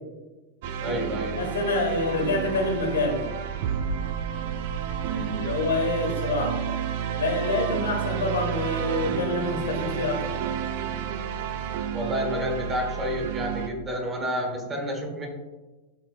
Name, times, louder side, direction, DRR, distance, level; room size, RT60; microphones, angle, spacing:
sound 1, 0.6-13.7, right 8 dB, 50° right, 0.4 m, -30 dB
voice 1, 0.8-1.4 5.1-5.4 11.9-15.3, equal, 20° right, 1 dB, 1.4 m, -30 dB
voice 2, 1.3-3.2 5.3-6.6 7.1-10.2, left 2 dB, 70° left, 1 dB, 1.9 m, -26 dB
11.5 x 4.4 x 2.3 m, 1.2 s
figure-of-eight pair, 90°, 0 cm